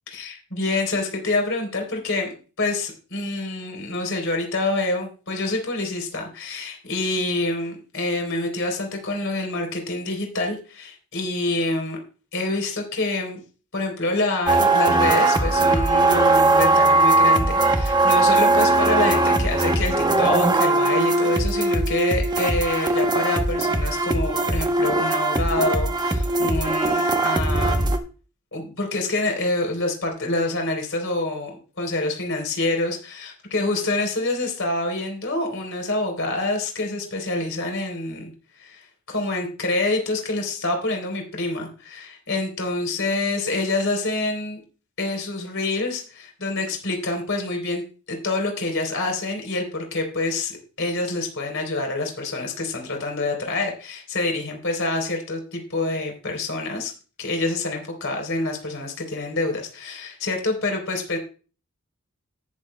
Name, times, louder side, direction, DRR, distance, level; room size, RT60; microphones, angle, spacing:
voice 1, 0.1-2.3 2.6-12.0 12.3-13.4 13.7-27.9 28.5-44.6 45.0-47.8 48.1-50.5 50.8-56.9 57.2-61.2, left 2 dB, 60° left, 3 dB, 3.7 m, -26 dB
sound 1, 14.5-28.0, right 2 dB, 20° right, 0.9 m, -20 dB
18.5 x 7.4 x 2.3 m, 0.35 s
head